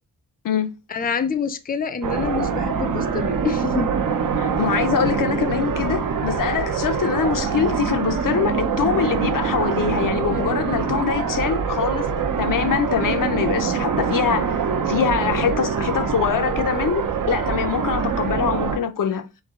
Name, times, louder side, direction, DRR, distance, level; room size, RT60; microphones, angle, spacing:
voice 1, 0.9-3.9, left 6 dB, 25° left, 0.5 m, -26 dB
sound 1, 2.0-18.8, right 6 dB, 70° right, 0.8 m, -24 dB
voice 2, 4.4-12.1 12.4-14.6 14.9-19.3, left 7 dB, 70° left, 0.6 m, -23 dB
3.8 x 3.2 x 3.6 m
cardioid pair, 75°, 33 cm